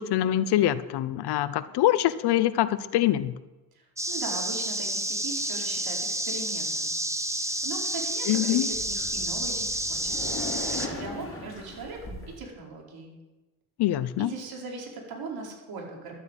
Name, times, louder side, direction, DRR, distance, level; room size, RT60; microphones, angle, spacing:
voice 1, 0.0-3.3 8.3-8.7 13.8-14.3, left 13 dB, 80° left, 15 dB, 0.9 m, -24 dB
voice 2, 3.7-6.9 7.3-13.1 14.2-16.2, right 3 dB, 65° right, 0 dB, 4.6 m, -40 dB
sound 1, 4.0-10.9, right 1 dB, 5° right, 1.3 m, -30 dB
sound 2, 8.7-12.4, left 2 dB, 35° left, 4.2 m, -39 dB
12.0 x 8.3 x 9.0 m, 1.1 s
cardioid pair, 85°, 39 cm